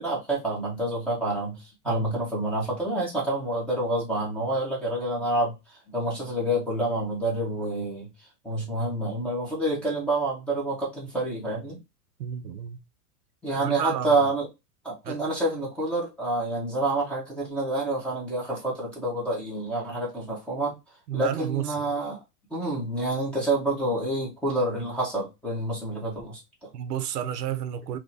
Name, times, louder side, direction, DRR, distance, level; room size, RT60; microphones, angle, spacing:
voice 1, 0.0-8.1 8.4-11.8 13.4-14.5 14.8-20.8 21.1-22.2 22.5-26.7, right 2 dB, ahead, 1.3 m, -28 dB
voice 2, 12.2-12.8 13.6-14.3 15.0-15.2 21.1-21.9 26.7-28.0, right 10 dB, 90° right, 0.8 m, -31 dB
3.9 x 3.0 x 2.6 m
supercardioid pair, 160°, 46 cm